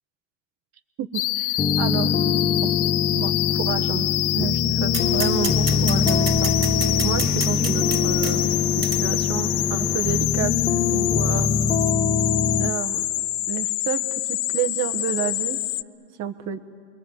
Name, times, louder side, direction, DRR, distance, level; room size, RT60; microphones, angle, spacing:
voice 1, 1.0-2.1 2.6-2.7 3.1-6.5 7.0-8.5 8.8-10.5 10.9-11.5 12.6-13.1 13.5-15.6 16.2-16.6, right 9 dB, 40° right, 6 dB, 1.3 m, -30 dB
sound 1, 1.1-15.8, left 16 dB, 80° left, 0.6 m, -26 dB
sound 2, 1.6-12.7, left 6 dB, 15° left, 0.6 m, -23 dB
sound 3, 4.9-10.3, right 3 dB, 10° right, 2.9 m, -32 dB
28.0 x 22.0 x 8.0 m, 2.2 s
supercardioid pair, 115°, 42 cm